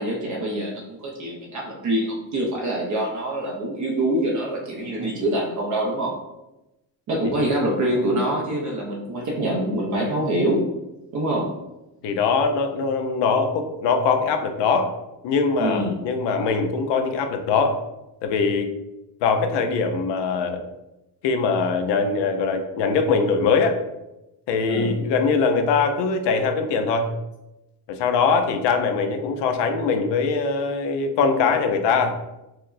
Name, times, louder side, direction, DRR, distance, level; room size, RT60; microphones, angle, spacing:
voice 1, 0.0-6.2 7.1-10.7 11.1-11.5 15.6-16.0 24.7-24.9, right 1 dB, 45° right, -2 dB, 0.6 m, -25 dB
voice 2, 12.0-14.9 15.2-17.8 18.2-18.7 19.2-20.6 21.2-23.8 24.5-27.1 27.9-32.2, left 5 dB, 75° left, 5 dB, 0.6 m, -22 dB
4.6 x 2.0 x 2.5 m, 0.95 s
cardioid pair, 145°, 43 cm